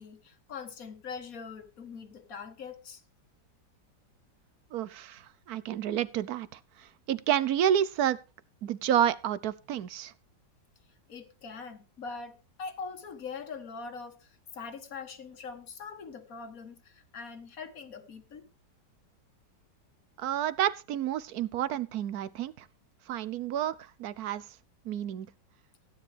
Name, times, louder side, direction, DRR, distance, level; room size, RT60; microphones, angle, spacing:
voice 1, 0.0-3.0 11.1-18.4, left 5 dB, 50° left, 1.9 m, -42 dB
voice 2, 4.7-5.2 5.5-6.5 7.1-8.2 8.6-10.1 20.2-22.6 23.1-24.4 24.9-25.3, right 10 dB, 65° right, 1.1 m, -29 dB
16.0 x 9.7 x 3.4 m
omnidirectional pair, 1.9 m